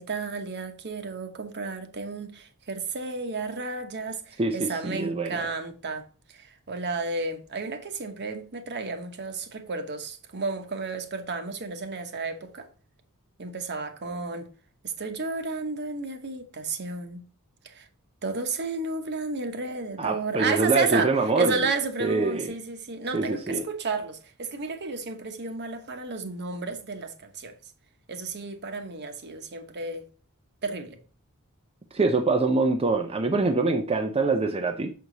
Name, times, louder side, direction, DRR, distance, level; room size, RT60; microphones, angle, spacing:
voice 1, 0.0-12.7 13.4-14.5 14.8-17.2 17.6-17.9 18.2-27.7 28.1-30.0 30.6-31.0, right 3 dB, 50° right, 1.1 m, -32 dB
voice 2, 4.4-5.4 20.0-21.6 22.0-22.5 23.1-23.6 31.9-34.9, right 3 dB, 25° right, 0.6 m, -24 dB
6.9 x 4.7 x 3.9 m
head